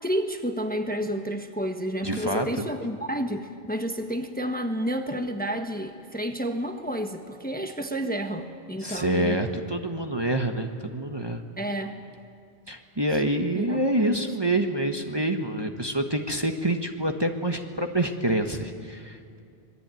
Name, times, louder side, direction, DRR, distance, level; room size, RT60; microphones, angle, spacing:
voice 1, 0.0-9.4 11.6-11.9 13.5-14.3, equal, 10° left, 5 dB, 1.2 m, -30 dB
voice 2, 2.0-2.7 8.8-11.4 12.7-19.4, right 1 dB, 25° right, 3 dB, 1.3 m, -27 dB
25.5 x 20.5 x 9.2 m, 2.4 s
omnidirectional pair, 1.1 m